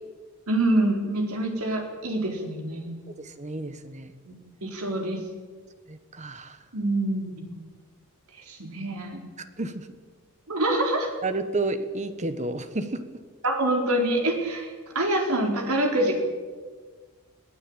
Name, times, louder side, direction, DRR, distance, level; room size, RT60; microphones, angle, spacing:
voice 1, 0.5-2.9 4.2-4.3 4.6-5.2 6.7-7.5 8.5-9.3 10.5-11.1 13.4-16.2, right 1 dB, 85° right, 2 dB, 4.4 m, -26 dB
voice 2, 3.1-4.1 5.9-6.6 9.4-9.9 11.2-13.0, right 2 dB, 35° right, 11 dB, 1.2 m, -31 dB
21.5 x 15.0 x 8.9 m, 1.5 s
head